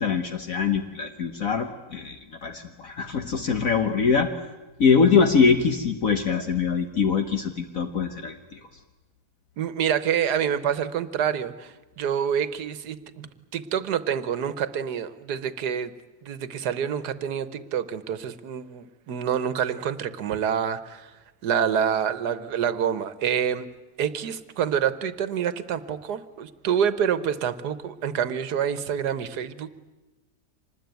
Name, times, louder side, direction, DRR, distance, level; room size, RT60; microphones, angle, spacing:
voice 1, 0.0-4.3 4.8-8.6, left 5 dB, 60° left, 6 dB, 1.6 m, -23 dB
voice 2, 9.6-15.9 16.2-21.1 21.4-23.6 24.0-29.7, right 8 dB, 85° right, 13 dB, 1.6 m, -27 dB
26.0 x 20.0 x 9.3 m, 1.1 s
omnidirectional pair, 1.7 m